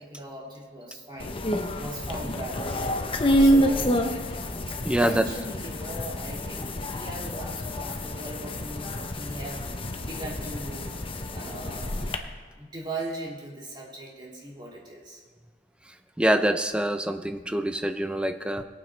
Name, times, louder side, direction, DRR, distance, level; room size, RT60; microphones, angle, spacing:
voice 1, 0.0-1.4 1.8-4.0 4.8-10.9 11.3-15.2, right 1 dB, 25° right, -4 dB, 2.8 m, -39 dB
sound 1, 1.2-12.2, equal, 30° left, 0.8 m, -28 dB
voice 2, 4.8-5.2 16.2-18.6, right 1 dB, 5° right, 8 dB, 0.5 m, -25 dB
22.0 x 8.9 x 3.3 m, 1.4 s
head